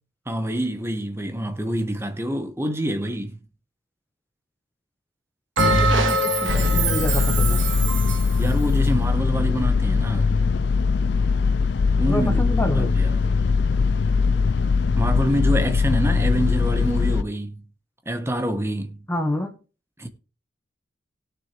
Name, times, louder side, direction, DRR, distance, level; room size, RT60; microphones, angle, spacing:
voice 1, 0.3-3.4 8.4-10.3 12.0-13.3 15.0-17.6 18.1-19.0 20.0-20.1, equal, 15° right, 1.1 m, -26 dB
voice 2, 5.6-7.6 12.1-13.0 19.1-19.5, left 1 dB, 10° left, 1.0 m, -28 dB
Bell, 5.6-8.3, right 2 dB, 90° right, 1.9 m, -22 dB
sound 1, 6.5-17.2, left 4 dB, 60° left, 0.4 m, -21 dB
17.0 x 6.7 x 3.3 m
head